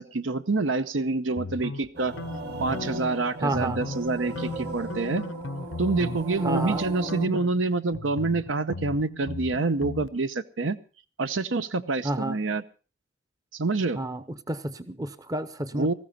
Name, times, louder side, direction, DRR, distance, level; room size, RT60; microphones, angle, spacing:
voice 1, 0.0-2.2 2.6-5.2 5.8-10.8 11.2-12.6 13.5-14.0 15.7-15.9, right 3 dB, 80° right, 13 dB, 0.8 m, -27 dB
sound 1, 1.4-3.2 3.5-4.1 4.4-6.2 6.5-6.8 7.1-10.1, left 3 dB, 80° left, 0.7 m, -37 dB
sound 2, 1.9-7.3, right 1 dB, 50° right, 2.4 m, -35 dB
voice 2, 3.4-3.8 6.4-6.8 12.0-12.4 13.9-15.9, right 2 dB, 20° right, 13 dB, 0.7 m, -30 dB
19.0 x 15.0 x 4.2 m, 0.35 s
head